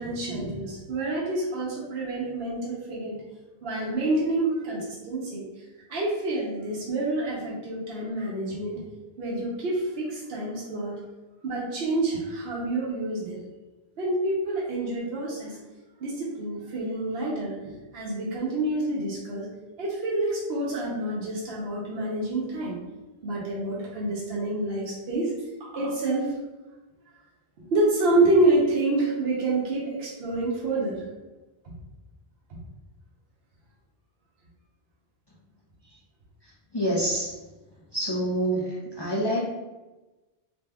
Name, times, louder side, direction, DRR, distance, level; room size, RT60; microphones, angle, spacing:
voice 1, 0.0-3.1 3.6-5.4 5.9-8.8 9.2-10.9 11.4-13.4 14.0-15.6 16.0-19.5 19.8-22.7 23.2-25.3 25.6-26.3 27.6-31.0 31.6-31.7, right 2 dB, 70° right, -5 dB, 0.9 m, -27 dB
voice 2, 36.7-37.3 37.9-38.7 39.0-39.4, right 1 dB, 40° left, -6 dB, 0.4 m, -26 dB
3.4 x 2.9 x 2.2 m, 1.1 s
omnidirectional pair, 1.1 m